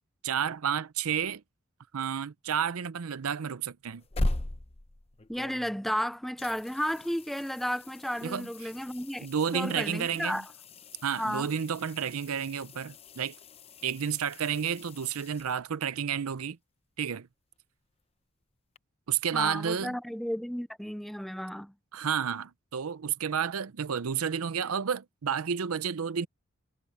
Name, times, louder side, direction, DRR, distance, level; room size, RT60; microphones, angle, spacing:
voice 1, 0.2-1.4 1.9-4.0 8.2-8.7 9.2-10.4 11.0-13.4 13.8-16.6 17.0-17.3 19.1-20.0 21.9-26.3, right 7 dB, 85° right, 0.6 m, -31 dB
sound 1, 3.8-6.0 6.4-16.0 18.8-18.9, left 1 dB, 25° left, 0.8 m, -40 dB
voice 2, 5.3-9.3 9.5-10.5 11.2-11.5 19.3-21.7, equal, ahead, 0.4 m, -33 dB
head